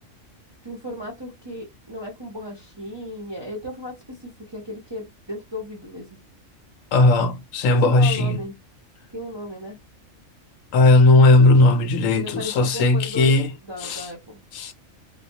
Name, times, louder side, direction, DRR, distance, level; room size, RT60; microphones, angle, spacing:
voice 1, 0.6-6.2 7.6-8.5 9.1-9.8 12.1-13.3 13.6-14.4, left 1 dB, 30° right, 0.5 m, -35 dB
voice 2, 6.9-8.4 10.7-13.5 13.8-14.1 14.5-14.7, left 2 dB, 75° left, 0.9 m, -17 dB
2.2 x 2.2 x 2.7 m
omnidirectional pair, 1.4 m